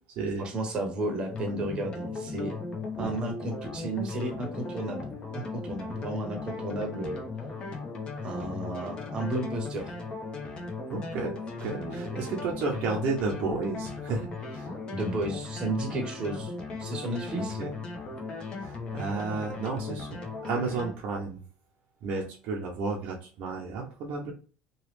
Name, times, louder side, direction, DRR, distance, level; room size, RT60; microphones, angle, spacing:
voice 1, 0.4-2.5 3.0-5.1 5.3-7.2 8.2-9.9 11.7-12.5 14.9-16.5 16.8-17.6, right 1 dB, 30° right, 3 dB, 0.8 m, -33 dB
sound 1, 1.3-20.9, left 4 dB, 35° left, 0.8 m, -37 dB
voice 2, 10.9-11.3 11.6-14.7 17.4-17.7 18.6-21.4 22.0-24.3, right 4 dB, 65° right, -2 dB, 0.7 m, -32 dB
3.0 x 2.3 x 3.2 m, 0.37 s
cardioid pair, 130°, 3 cm